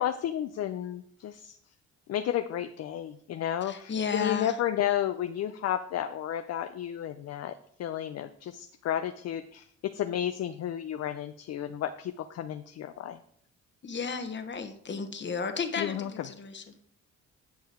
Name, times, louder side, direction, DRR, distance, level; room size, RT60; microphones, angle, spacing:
voice 1, 0.0-1.6 2.1-13.2 15.8-16.1, left 11 dB, 55° left, 9 dB, 0.5 m, -32 dB
voice 2, 3.6-4.6 13.8-16.7, left 5 dB, 40° left, 7 dB, 1.2 m, -33 dB
8.9 x 5.5 x 4.5 m, 0.65 s
cardioid pair, 90°, 30 cm